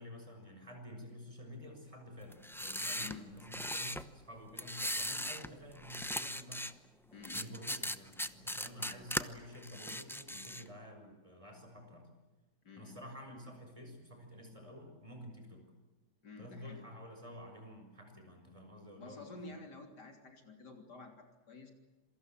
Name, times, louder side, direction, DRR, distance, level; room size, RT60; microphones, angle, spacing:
voice 1, 0.0-6.7 7.3-12.1 12.8-15.6 16.4-19.6, equal, 20° right, 3 dB, 6.3 m, -50 dB
sound 1, 2.3-4.0 4.6-5.5 5.8-6.7 7.2-9.2 9.6-10.7, equal, 5° left, 0.4 m, -38 dB
voice 2, 7.1-7.5 8.8-9.0 12.6-13.0 16.2-16.9 19.0-21.7, left 3 dB, 75° left, 4 dB, 3.9 m, -51 dB
27.0 x 23.5 x 7.6 m, 1.2 s
omnidirectional pair, 1.8 m